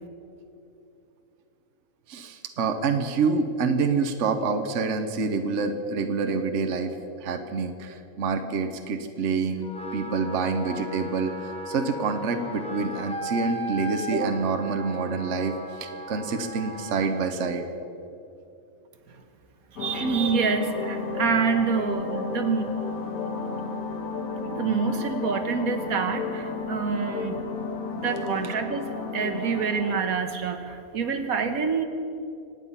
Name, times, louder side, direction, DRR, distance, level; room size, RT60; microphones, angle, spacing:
voice 1, 2.1-6.9 7.2-17.6 28.4-28.6, right 4 dB, 60° right, 7 dB, 1.2 m, -27 dB
Wind instrument woodwind instrument, 9.6-17.3, equal, 5° left, 1.0 m, -37 dB
sound 1, 19.8-30.0, left 4 dB, 75° left, 1.9 m, -32 dB
voice 2, 19.8-22.7 24.5-27.4 27.9-28.9 29.1-31.8, right 5 dB, 80° right, 7 dB, 1.6 m, -27 dB
26.0 x 9.2 x 5.6 m, 2.7 s
omnidirectional pair, 1.5 m